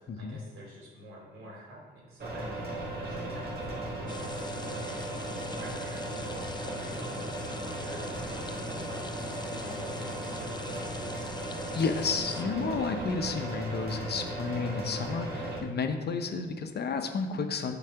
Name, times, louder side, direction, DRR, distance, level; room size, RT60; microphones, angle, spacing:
voice 1, 0.0-2.7 3.0-5.1 5.6-11.3, right 1 dB, 75° right, -2 dB, 2.5 m, -48 dB
sound 1, 2.2-15.6, right 1 dB, 50° right, 1.8 m, -36 dB
sound 2, 4.1-12.4, left 3 dB, 20° left, 0.6 m, -44 dB
voice 2, 11.7-17.8, left 5 dB, 50° left, 7 dB, 0.8 m, -31 dB
7.2 x 4.1 x 5.8 m, 1.3 s
supercardioid pair, 60°, 21 cm